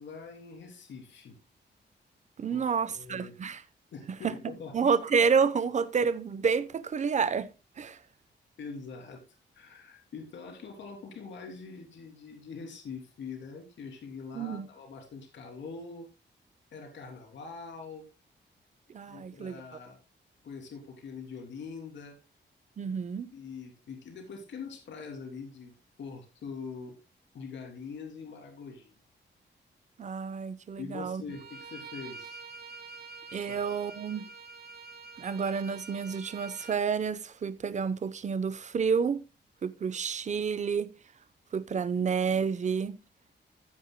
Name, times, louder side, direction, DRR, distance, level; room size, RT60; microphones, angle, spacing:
voice 1, 0.0-1.3 2.5-3.3 3.9-5.0 8.6-9.2 9.5-16.1 16.7-18.1 19.1-20.0 20.4-22.2 23.3-27.0 27.3-29.0 30.8-32.4 33.5-33.6, left 5 dB, 70° left, 3.2 m, -43 dB
voice 2, 2.4-3.6 4.7-7.5 7.8-8.0 14.3-14.7 18.9-19.6 22.8-23.3 30.0-31.2 33.3-34.3 35.2-39.2 39.6-40.9 41.5-43.0, right 6 dB, 40° right, 0.8 m, -29 dB
Bowed string instrument, 31.3-36.8, right 4 dB, 55° right, 1.5 m, -46 dB
15.0 x 9.2 x 2.2 m
wide cardioid pair, 170°, 19 cm